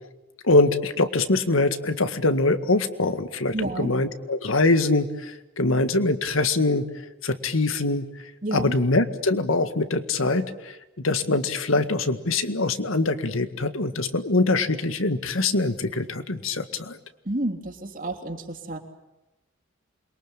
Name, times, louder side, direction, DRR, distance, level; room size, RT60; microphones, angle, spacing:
voice 1, 0.4-6.9 7.2-8.1 8.5-10.8 11.0-17.0, left 2 dB, 90° left, 10 dB, 1.9 m, -23 dB
voice 2, 3.5-3.9 8.4-8.8 17.2-18.8, right 1 dB, 40° right, 4 dB, 3.4 m, -30 dB
28.5 x 23.0 x 8.9 m, 0.99 s
head